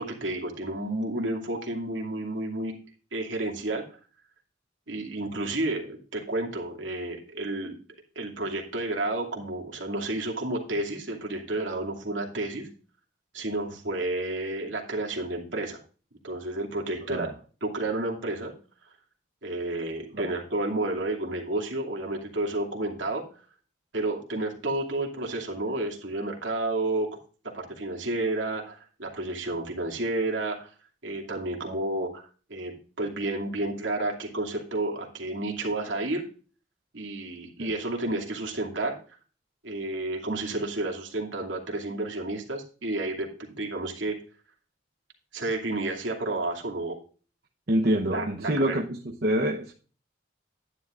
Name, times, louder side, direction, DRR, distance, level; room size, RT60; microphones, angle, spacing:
voice 1, 0.0-2.8 3.1-3.8 4.9-7.8 8.2-12.7 13.3-15.8 16.2-17.3 17.6-18.5 19.4-23.2 23.9-27.1 27.5-30.7 31.0-36.2 36.9-39.0 39.6-44.2 45.3-47.0 48.1-48.8, right 2 dB, 75° right, 2.6 m, -31 dB
voice 2, 47.7-49.7, right 1 dB, 55° right, 0.9 m, -26 dB
11.5 x 10.0 x 2.5 m
head